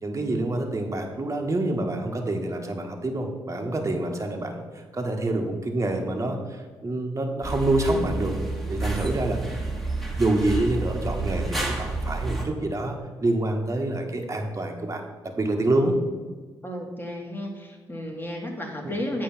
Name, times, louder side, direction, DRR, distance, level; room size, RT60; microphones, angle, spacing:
voice 1, 0.0-8.3 8.7-9.6 10.1-15.9 18.8-19.0, right 2 dB, 30° right, 2 dB, 1.5 m, -27 dB
sound 1, 7.4-12.5, right 3 dB, ahead, 2.1 m, -30 dB
voice 2, 16.6-19.2, left 1 dB, 20° left, 1 dB, 2.0 m, -33 dB
8.4 x 4.7 x 6.1 m, 1.4 s
hypercardioid pair, 45°, 10 cm